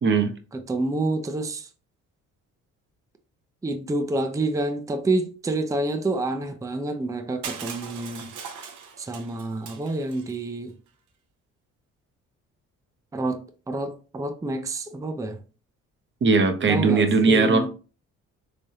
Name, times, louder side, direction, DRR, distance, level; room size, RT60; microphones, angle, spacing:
voice 1, 0.0-0.3 16.2-17.7, right 4 dB, 40° right, 0.8 m, -19 dB
voice 2, 0.5-1.7 3.6-8.3 9.0-10.7 13.1-15.4 16.7-17.7, right 2 dB, 10° right, 0.5 m, -28 dB
Crushing, 7.4-10.4, right 6 dB, 80° right, 0.8 m, -39 dB
3.5 x 3.3 x 2.7 m
cardioid pair, 90°, 30 cm